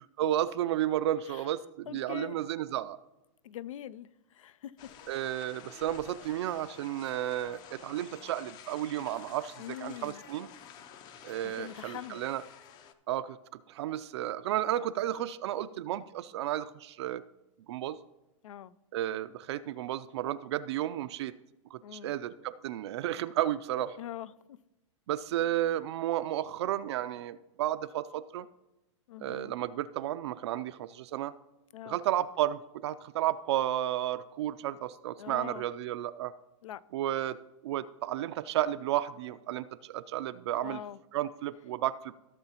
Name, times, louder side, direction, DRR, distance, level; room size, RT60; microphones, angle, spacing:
voice 1, 0.2-3.0 5.1-9.5 9.8-10.5 11.2-12.4 13.1-13.4 13.7-17.2 17.7-18.0 18.9-21.3 21.7-24.0 25.1-28.5 29.2-31.3 31.9-36.3 36.9-37.4 37.6-40.8 41.1-42.2, right 12 dB, 55° right, 0.4 m, -32 dB
voice 2, 1.9-2.4 3.4-4.7 9.6-10.2 11.4-12.2 18.4-18.7 21.8-22.1 24.0-24.6 29.1-29.6 31.7-32.0 35.2-35.6 36.6-36.8 40.6-41.0, left 11 dB, 85° left, 0.4 m, -43 dB
sound 1, 4.8-12.9, left 8 dB, 25° left, 0.5 m, -51 dB
15.5 x 6.8 x 2.9 m
hypercardioid pair, 150°, 16 cm